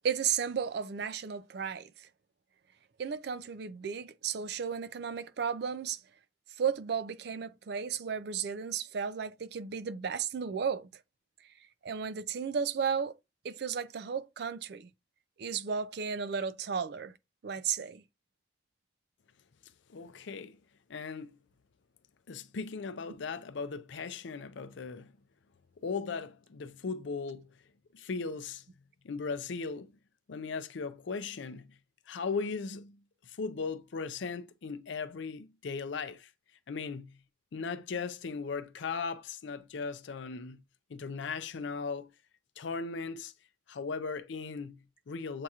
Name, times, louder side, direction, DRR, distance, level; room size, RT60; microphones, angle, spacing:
voice 1, 0.0-1.9 3.0-6.0 6.6-10.9 11.8-13.1 13.4-14.9 15.4-17.1 17.4-18.0, right 6 dB, 55° right, 0.4 m, -34 dB
voice 2, 19.9-20.6 20.9-21.4 22.3-25.1 25.8-27.5 27.9-28.6 29.0-29.9 30.3-31.8 32.1-36.3 36.7-37.2 37.5-40.6 40.9-42.1 42.6-43.3 43.7-45.4, left 4 dB, 75° left, 0.5 m, -38 dB
7.4 x 2.8 x 2.3 m
head